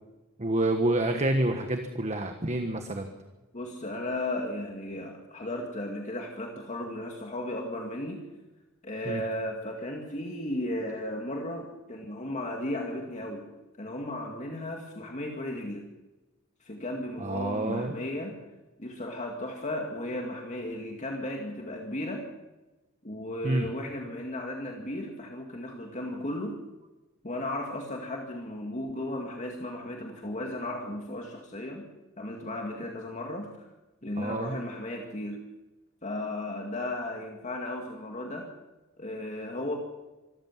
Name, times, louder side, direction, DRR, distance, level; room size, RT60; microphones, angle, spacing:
voice 1, 0.4-3.1 9.1-9.2 17.2-17.9 23.4-23.7 34.2-34.6, right 1 dB, 30° right, 5 dB, 1.4 m, -28 dB
voice 2, 3.5-8.2 8.8-13.5 13.8-15.9 16.6-18.3 18.8-22.3 23.0-26.6 27.2-31.8 32.2-33.5 34.0-35.4 36.0-38.5 39.0-39.8, left 1 dB, 35° left, 1 dB, 2.1 m, -35 dB
25.0 x 14.0 x 7.4 m, 1.1 s
head